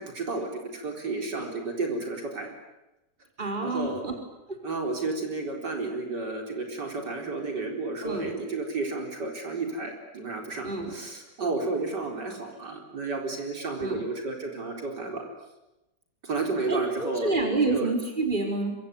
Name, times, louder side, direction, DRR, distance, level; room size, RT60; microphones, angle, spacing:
voice 1, 0.0-2.5 3.4-4.0 4.6-15.2 16.2-17.3 17.7-17.9, right 3 dB, 75° right, 2 dB, 4.8 m, -32 dB
voice 2, 3.4-4.1 8.0-8.3 10.6-10.9 13.8-14.0 16.7-18.8, right 3 dB, 25° right, 3 dB, 5.2 m, -28 dB
26.0 x 24.0 x 9.5 m, 0.97 s
omnidirectional pair, 1.9 m